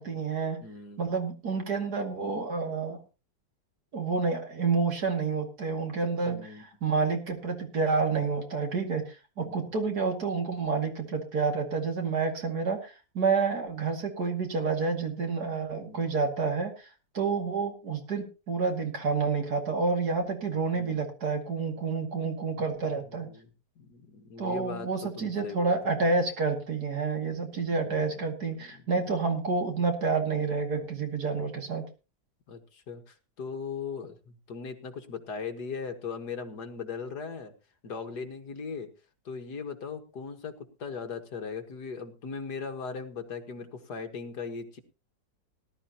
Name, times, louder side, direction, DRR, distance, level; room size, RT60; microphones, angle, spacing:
voice 1, 0.0-0.6 1.0-3.0 3.9-16.9 17.1-23.3 24.4-31.8, right 4 dB, 60° right, 3 dB, 2.8 m, -29 dB
voice 2, 0.6-1.0 6.3-6.7 9.4-9.6 15.8-16.1 20.7-21.1 22.6-22.7 23.1-23.5 23.8-26.0 27.5-28.1 28.5-29.0 32.5-37.5 37.8-38.9 39.3-44.8, left 5 dB, 65° left, 5 dB, 2.1 m, -39 dB
18.5 x 12.0 x 2.9 m, 0.31 s
omnidirectional pair, 1.9 m